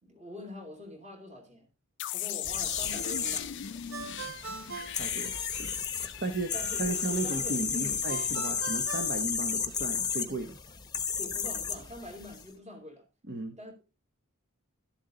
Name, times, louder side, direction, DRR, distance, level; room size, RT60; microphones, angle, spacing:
voice 1, 0.0-1.7 2.1-3.5 6.5-8.0 11.2-13.1 13.6-13.8, left 1 dB, 30° right, 3.0 m, -44 dB
sound 1, 2.0-8.8, left 11 dB, 55° left, 0.4 m, -40 dB
sound 2, 2.4-12.4, left 6 dB, 20° left, 0.9 m, -33 dB
Ringtone, 3.9-5.9 8.1-10.0, right 4 dB, 70° right, 1.4 m, -42 dB
voice 2, 4.9-5.7 6.2-6.5 6.8-10.6 13.3-13.6, right 2 dB, 50° right, 1.0 m, -35 dB
12.5 x 7.3 x 3.8 m
head